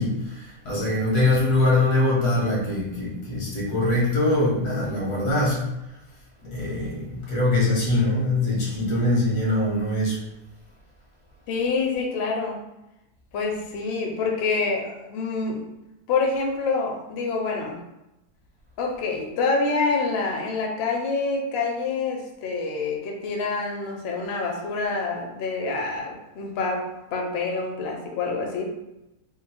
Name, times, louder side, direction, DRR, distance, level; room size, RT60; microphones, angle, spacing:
voice 1, 0.0-5.6 6.4-10.2, left 2 dB, 85° left, -5 dB, 1.8 m, -23 dB
voice 2, 11.5-12.6 13.3-15.7 16.1-17.8 18.8-28.6, left 4 dB, 55° left, 1 dB, 0.7 m, -27 dB
3.7 x 2.0 x 4.2 m, 0.93 s
omnidirectional pair, 1.6 m